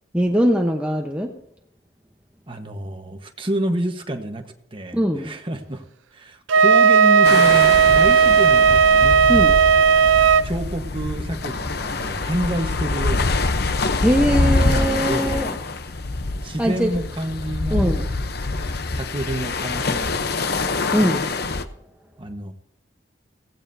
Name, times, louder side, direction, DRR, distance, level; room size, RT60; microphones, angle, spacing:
voice 1, 0.1-1.4 4.9-5.4 9.3-9.6 14.0-15.5 16.6-16.9 17.7-18.0 20.9-21.3, equal, 5° right, 1 dB, 1.0 m, -21 dB
voice 2, 2.5-4.4 4.7-5.8 6.1-9.2 10.4-13.4 14.4-15.4 16.4-18.1 18.9-20.9 22.2-22.5, right 1 dB, 25° right, 4 dB, 1.3 m, -29 dB
Wind instrument woodwind instrument, 6.5-10.5, right 6 dB, 80° right, 0.4 m, -14 dB
sound 1, 7.2-21.7, left 3 dB, 55° left, 0.8 m, -25 dB
16.5 x 16.0 x 2.8 m, 0.72 s
head